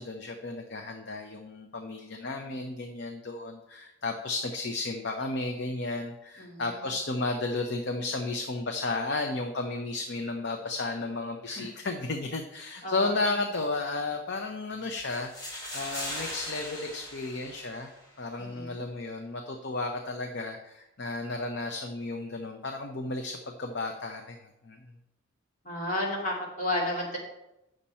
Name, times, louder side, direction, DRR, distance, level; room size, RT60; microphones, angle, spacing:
voice 1, 0.0-17.9 18.2-24.4 24.6-24.8, left 3 dB, 55° left, 3 dB, 0.7 m, -33 dB
voice 2, 6.4-6.8 11.5-11.7 12.8-13.1 18.4-18.8 25.6-27.2, left 1 dB, 35° left, -4 dB, 2.7 m, -32 dB
sound 1, 15.1-18.1, left 1 dB, 20° left, 2.3 m, -39 dB
8.5 x 6.6 x 4.3 m, 0.89 s
head